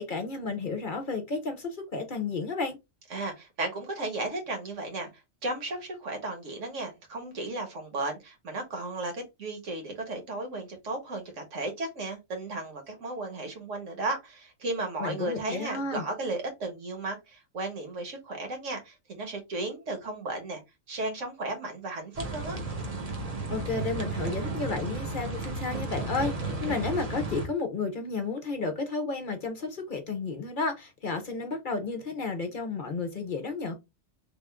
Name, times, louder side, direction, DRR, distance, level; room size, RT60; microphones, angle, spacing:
voice 1, 0.0-2.8 15.0-16.0 23.5-33.8, left 4 dB, 50° left, 0.7 m, -32 dB
voice 2, 3.1-5.1 5.4-20.6 20.9-22.6, right 2 dB, 70° right, 1.6 m, -34 dB
sound 1, 22.1-27.5, right 3 dB, 30° right, 1.0 m, -33 dB
3.5 x 2.4 x 3.4 m
omnidirectional pair, 1.3 m